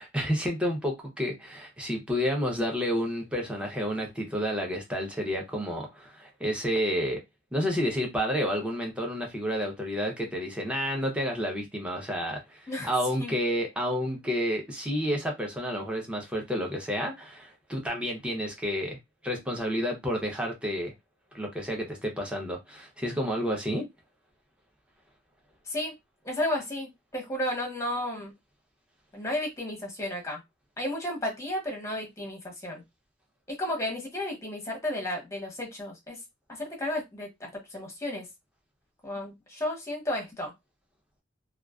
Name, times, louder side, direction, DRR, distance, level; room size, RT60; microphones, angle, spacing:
voice 1, 0.0-7.2 7.5-19.0 19.2-20.9 21.3-23.9, equal, 5° right, 0.6 m, -30 dB
voice 2, 26.2-28.3 29.1-30.4 30.8-32.8 33.6-36.2 36.5-38.2 39.0-40.5, left 1 dB, 15° left, 0.9 m, -33 dB
2.3 x 2.3 x 2.3 m
head